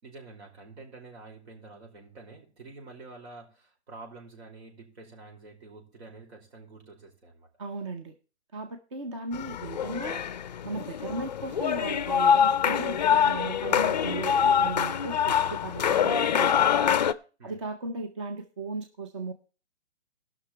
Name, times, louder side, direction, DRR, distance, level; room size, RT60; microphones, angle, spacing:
voice 1, 0.0-7.5 17.4-17.6, right 3 dB, 70° right, 0 dB, 5.0 m, -48 dB
voice 2, 7.6-8.1 8.5-10.2 10.6-16.9 17.4-19.3, right 3 dB, 25° right, 6 dB, 0.6 m, -36 dB
sound 1, 9.3-17.1, left 8 dB, 40° left, 0.4 m, -25 dB
17.0 x 6.0 x 4.5 m, 0.36 s
hypercardioid pair, 165°, 34 cm